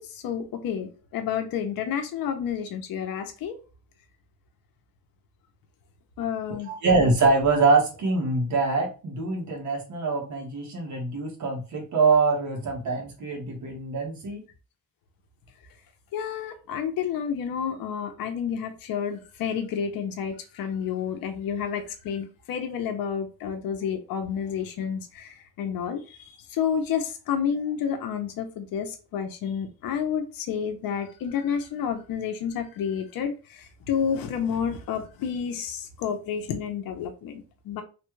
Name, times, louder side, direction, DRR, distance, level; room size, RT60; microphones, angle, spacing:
voice 1, 0.0-3.6 6.2-6.7 16.1-37.8, left 7 dB, 75° left, 0.7 m, -30 dB
voice 2, 6.6-14.4, right 3 dB, 55° right, 1.3 m, -24 dB
3.2 x 2.3 x 3.1 m
cardioid pair, 150°, 35 cm